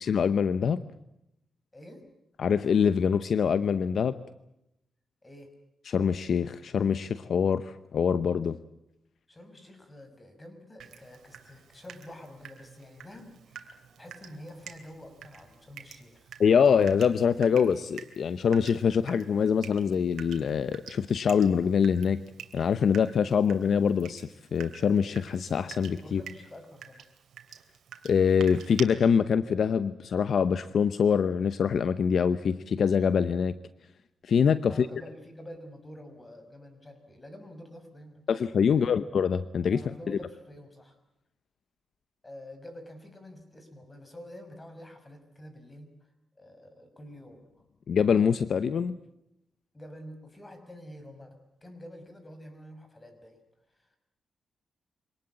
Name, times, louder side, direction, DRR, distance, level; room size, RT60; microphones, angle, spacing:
voice 1, 0.0-0.8 2.4-4.1 5.9-8.6 16.4-22.2 22.5-26.2 28.0-33.5 34.2-34.9 38.3-39.8 40.1-40.2 47.9-49.0, left 7 dB, 65° left, 13 dB, 0.8 m, -24 dB
voice 2, 1.7-2.0 5.2-5.5 9.3-13.7 14.0-16.4 26.0-27.0 34.6-38.2 38.8-38.9 39.7-41.0 42.2-45.9 46.4-47.6 49.7-53.4 53.7-53.9, left 1 dB, 20° left, 8 dB, 5.8 m, -48 dB
Water tap faucet / Drip, 10.8-28.8, right 8 dB, 80° right, 2.9 m, -48 dB
25.5 x 19.0 x 8.6 m, 0.86 s
cardioid pair, 90°, 0 cm